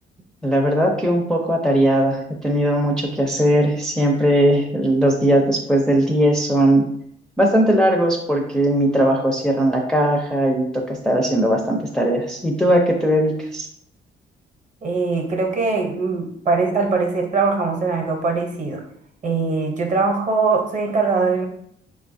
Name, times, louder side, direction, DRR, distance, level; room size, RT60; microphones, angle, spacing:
voice 1, 0.4-6.9 7.4-13.7, right 1 dB, 5° left, 0 dB, 0.4 m, -19 dB
voice 2, 14.8-18.8 19.2-21.5, right 4 dB, 40° right, 2 dB, 0.7 m, -21 dB
3.8 x 2.3 x 2.5 m, 0.68 s
cardioid pair, 90°, 20 cm